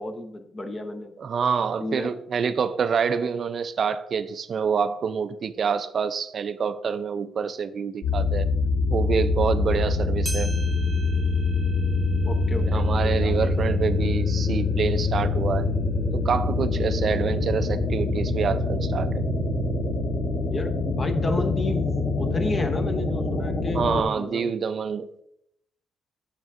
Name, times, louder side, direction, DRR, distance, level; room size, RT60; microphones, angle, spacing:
voice 1, 0.0-1.2 1.8-2.1 12.2-13.7 20.5-21.9 22.2-24.5, left 2 dB, 30° left, 7 dB, 0.7 m, -31 dB
voice 2, 1.2-8.5 8.9-10.5 12.7-15.7 16.1-19.2 23.7-25.1, right 6 dB, 50° right, 12 dB, 0.3 m, -27 dB
sound 1, 8.0-24.0, left 3 dB, 50° left, 1.0 m, -25 dB
sound 2, 10.2-14.9 15.4-15.5 16.3-16.4 17.3-17.4, right 3 dB, 20° right, 0.7 m, -42 dB
7.8 x 6.6 x 2.5 m, 0.74 s
cardioid pair, 90°, 0 cm